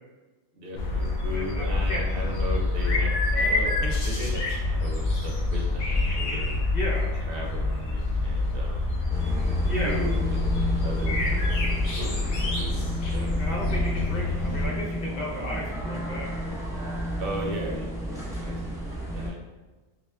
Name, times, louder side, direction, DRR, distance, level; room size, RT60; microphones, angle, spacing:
voice 1, 0.6-6.5 7.3-8.8 9.8-11.7 12.0-13.3 17.2-19.4, equal, 60° right, -1 dB, 0.6 m, -36 dB
sound 1, 0.7-14.7, left 2 dB, 80° left, 1.2 m, -26 dB
voice 2, 1.3-2.0 6.7-7.1 9.6-10.0 13.4-16.3, equal, 45° left, -5 dB, 0.6 m, -33 dB
sound 2, 9.1-19.3, equal, 5° right, 0.6 m, -32 dB
5.8 x 2.2 x 2.3 m, 1.2 s
omnidirectional pair, 1.4 m